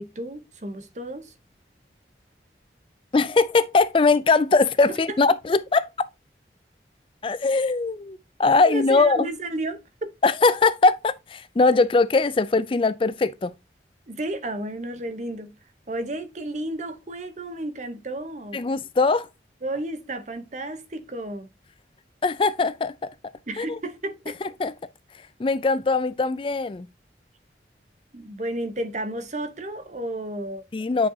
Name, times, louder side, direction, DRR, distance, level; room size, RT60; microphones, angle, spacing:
voice 1, 0.0-1.3 4.9-5.2 8.6-10.1 14.1-15.5 15.9-18.6 19.6-21.5 23.5-24.4 28.1-30.6, right 1 dB, 40° right, 0.9 m, -32 dB
voice 2, 3.1-5.9 7.2-9.3 10.2-13.5 18.5-19.3 22.2-23.1 23.6-23.8 24.6-24.7 25.4-26.9 30.7-31.1, left 3 dB, 30° left, 0.4 m, -21 dB
9.3 x 5.3 x 2.7 m
head